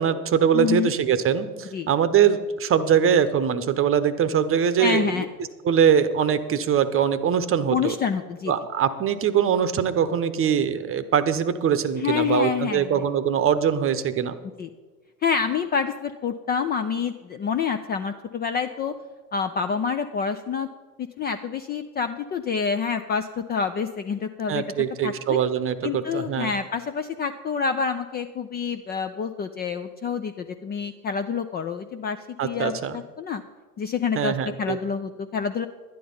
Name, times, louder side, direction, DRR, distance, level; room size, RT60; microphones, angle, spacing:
voice 1, 0.0-5.2 5.6-7.9 8.5-14.3 24.5-26.5 32.4-33.0 34.2-34.8, right 8 dB, 25° right, 12 dB, 0.9 m, -22 dB
voice 2, 0.5-0.9 1.7-1.9 4.8-5.3 7.7-8.5 12.0-12.9 14.6-14.7 15.2-18.9 19.3-20.7 21.2-24.6 25.0-25.4 25.8-32.8 33.2-33.4 33.8-35.7, left 6 dB, 20° left, 8 dB, 0.4 m, -27 dB
11.5 x 10.0 x 5.4 m, 1.3 s
hypercardioid pair, 85°, 48 cm